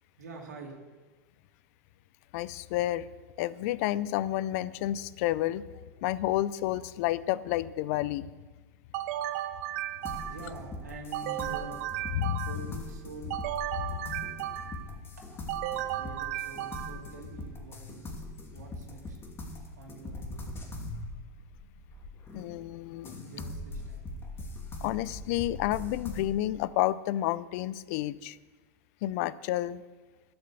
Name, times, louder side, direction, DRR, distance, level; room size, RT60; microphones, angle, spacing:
voice 1, 0.2-0.9 10.0-11.8 12.4-13.4 15.2-18.2 18.5-19.2 19.7-20.5 23.1-24.1, right 3 dB, 90° right, -1 dB, 2.5 m, -46 dB
voice 2, 2.3-3.1 3.4-5.6 6.0-8.3 12.1-12.5 13.8-14.2 22.3-23.2 24.8-28.4 29.0-29.8, left 14 dB, 60° left, 19 dB, 0.5 m, -30 dB
sound 1, 8.9-10.6 11.1-12.8 13.3-14.9 15.5-17.2, right 13 dB, 65° right, 0.8 m, -35 dB
sound 2, 10.0-22.6 23.0-26.3, left 2 dB, 25° left, 2.5 m, -42 dB
11.5 x 7.9 x 6.9 m, 1.3 s
hypercardioid pair, 100°, 9 cm